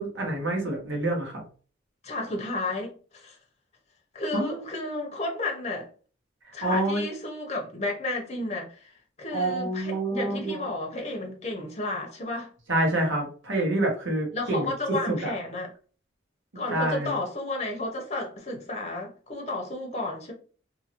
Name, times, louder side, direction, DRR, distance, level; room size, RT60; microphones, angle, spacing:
voice 1, 0.0-1.4 4.3-4.6 6.6-7.0 9.3-10.7 12.7-14.7 15.1-15.3 16.5-17.2, right 1 dB, 85° right, 1.2 m, -27 dB
voice 2, 2.0-3.4 4.1-5.9 6.5-12.5 14.3-15.7 16.6-20.3, left 2 dB, 35° left, 0.7 m, -32 dB
2.8 x 2.6 x 2.8 m
head